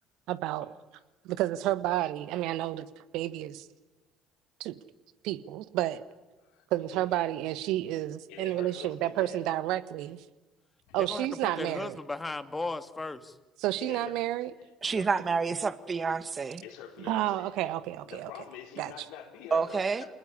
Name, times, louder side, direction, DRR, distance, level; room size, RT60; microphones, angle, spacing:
voice 1, 0.3-0.6 1.2-2.9 3.1-3.7 4.6-4.8 5.2-6.0 6.7-10.2 10.9-12.0 13.6-14.5 17.0-18.3 18.8-18.9, right 14 dB, 65° right, 1.4 m, -30 dB
voice 2, 6.4-7.2 7.8-8.0 8.3-9.4 10.9-11.0 13.8-14.2 14.8-15.1 16.6-17.8 18.0-20.2, left 9 dB, 65° left, 4.2 m, -46 dB
voice 3, 11.0-13.4, left 3 dB, 20° left, 2.3 m, -36 dB
voice 4, 14.8-16.6 19.5-20.0, right 5 dB, 30° right, 2.0 m, -28 dB
28.0 x 20.0 x 9.8 m
figure-of-eight pair, 55°, 0 cm